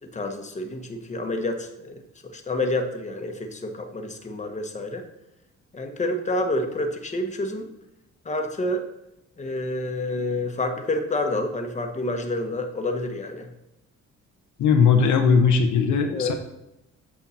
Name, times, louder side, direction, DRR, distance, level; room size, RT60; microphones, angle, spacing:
voice 1, 0.0-5.0 5.7-7.7 8.2-8.8 9.4-13.5 16.1-16.3, left 2 dB, 25° left, 4 dB, 1.2 m, -28 dB
voice 2, 14.6-16.3, left 6 dB, 70° left, 5 dB, 0.9 m, -19 dB
8.3 x 5.7 x 4.2 m, 0.87 s
cardioid pair, 90°, 30 cm